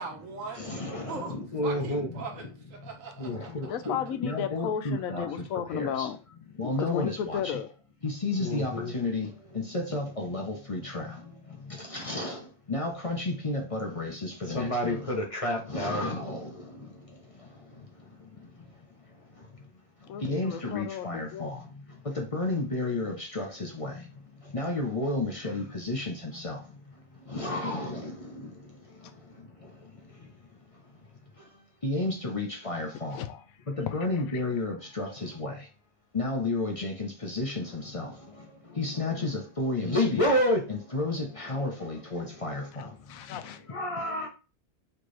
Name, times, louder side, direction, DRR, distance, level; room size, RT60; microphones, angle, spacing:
voice 1, 0.0-0.8 1.1-1.4 1.6-3.5, right 4 dB, 75° right, 1.4 m, -40 dB
voice 2, 0.6-2.1 3.2-4.0 4.2-5.3 5.7-6.1 6.6-7.4 8.0-9.3 9.7-11.1 11.9-12.4 12.7-16.4 20.2-21.5 22.2-23.9 24.5-26.6 27.3-28.1 31.8-33.2 33.8-35.5 36.1-38.1 38.8-42.6 43.7-44.3, left 2 dB, 35° left, 0.6 m, -30 dB
voice 3, 3.7-6.2 6.6-7.7 20.1-21.5 33.1-33.4 42.8-43.6, left 9 dB, 85° left, 1.0 m, -34 dB
4.4 x 2.9 x 3.2 m
omnidirectional pair, 1.4 m